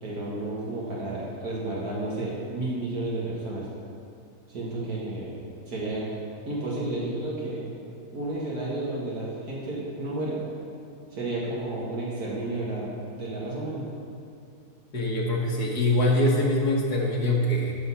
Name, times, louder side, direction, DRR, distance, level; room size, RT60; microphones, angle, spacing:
voice 1, 0.0-3.7 4.5-5.4 5.7-6.1 6.5-7.6 8.1-10.4 11.1-13.8, right 2 dB, 75° right, -6 dB, 2.1 m, -31 dB
voice 2, 14.9-17.8, left 1 dB, 85° left, -3 dB, 1.8 m, -23 dB
13.0 x 6.3 x 5.7 m, 2.4 s
omnidirectional pair, 1.6 m